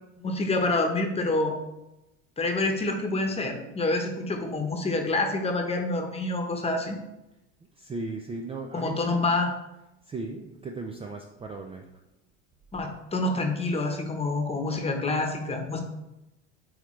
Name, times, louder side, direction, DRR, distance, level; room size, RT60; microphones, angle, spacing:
voice 1, 0.2-1.6 2.4-7.0 8.7-9.5 12.7-15.8, left 2 dB, 20° left, 4 dB, 1.0 m, -27 dB
voice 2, 7.7-9.0 10.0-11.9, right 3 dB, 15° right, 2 dB, 0.4 m, -36 dB
9.0 x 3.3 x 3.2 m, 0.94 s
supercardioid pair, 105°, 33 cm